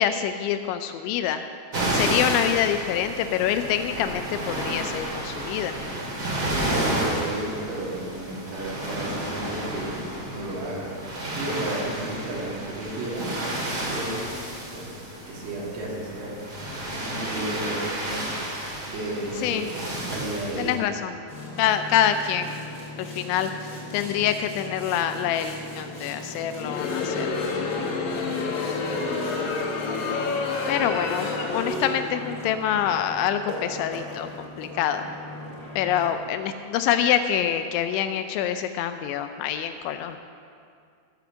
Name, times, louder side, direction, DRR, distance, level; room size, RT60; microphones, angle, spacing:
voice 1, 0.0-1.4 1.9-5.8 19.4-19.7 20.6-21.1 21.6-22.5 23.0-27.5 30.7-35.0 35.8-40.2, left 9 dB, 85° left, 9 dB, 2.7 m, -26 dB
sound 1, 1.7-20.8, right 1 dB, 40° right, 1.5 m, -31 dB
voice 2, 6.6-10.9 11.3-13.3 13.7-14.3 14.7-15.0 15.3-16.4 17.0-18.3 18.9-19.8 20.1-20.7 28.7-29.2, right 1 dB, 70° right, -6 dB, 4.7 m, -33 dB
Boat Water vehicle, 21.3-36.1, left 1 dB, 25° left, 1.8 m, -39 dB
Crowd, 26.5-32.2, left 4 dB, 65° left, 2.3 m, -28 dB
14.5 x 7.2 x 6.9 m, 2.3 s
omnidirectional pair, 5.7 m